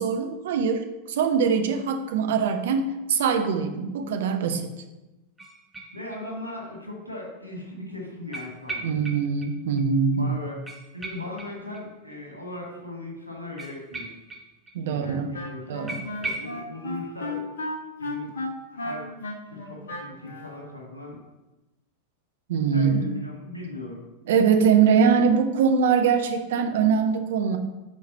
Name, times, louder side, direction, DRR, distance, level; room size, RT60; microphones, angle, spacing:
voice 1, 0.0-4.7 8.8-10.3 14.7-15.4 15.7-16.0 22.5-23.0 24.3-27.6, right 6 dB, 55° right, 6 dB, 0.7 m, -22 dB
sound 1, 5.4-6.5 6.8-6.9 8.3-9.5 9.8-9.9 10.1-10.2 10.6-12.1 13.6-14.8 15.0-15.1 15.4-15.5 15.9-16.6, right 2 dB, 10° right, 0.9 m, -38 dB
voice 2, 5.9-8.9 10.2-10.6 10.9-14.1 14.8-17.5 18.0-18.3 18.7-19.1 19.5-21.2 22.7-24.0, left 2 dB, 90° left, -2 dB, 1.9 m, -38 dB
Wind instrument woodwind instrument, 15.0-20.6, left 2 dB, 65° left, 1.2 m, -34 dB
5.3 x 4.9 x 5.5 m, 1.1 s
figure-of-eight pair, 90°, 0 cm